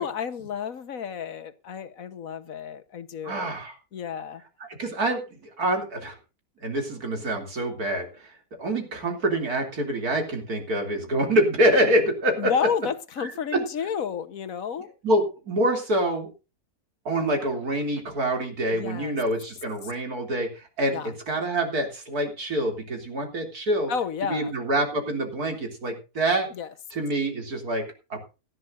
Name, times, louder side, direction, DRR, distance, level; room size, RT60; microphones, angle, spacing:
voice 1, 0.0-3.5 3.9-4.4 12.4-14.9 18.7-19.2 19.8-19.9 20.9-21.1 23.9-24.5 26.5-26.7, left 7 dB, 65° left, 11 dB, 1.5 m, -31 dB
voice 2, 3.2-3.8 4.8-5.2 5.6-6.2 6.6-8.1 8.6-12.5 15.0-16.3 17.1-23.9 24.3-26.5 26.9-28.4, right 1 dB, 70° right, 3 dB, 3.5 m, -26 dB
18.0 x 13.0 x 2.6 m, 0.30 s
omnidirectional pair, 1.6 m